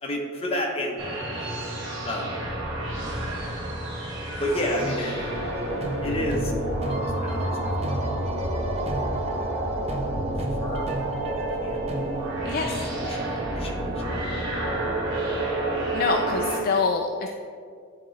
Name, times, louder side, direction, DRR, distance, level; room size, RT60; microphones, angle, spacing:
voice 1, 0.0-1.1 2.0-2.3 4.4-5.4 6.0-6.5 6.8-7.7 8.0-8.2 10.6-10.9 11.6-12.4 13.0-14.2, left 1 dB, 30° left, -1 dB, 1.0 m, -31 dB
sound 1, 1.0-16.6, right 1 dB, 65° right, 1.5 m, -29 dB
sound 2, 4.1-12.5, right 2 dB, 30° right, 0.6 m, -35 dB
voice 2, 12.4-12.7 15.9-17.3, left 4 dB, 45° left, 3 dB, 0.3 m, -25 dB
9.9 x 3.8 x 3.2 m, 2.2 s
head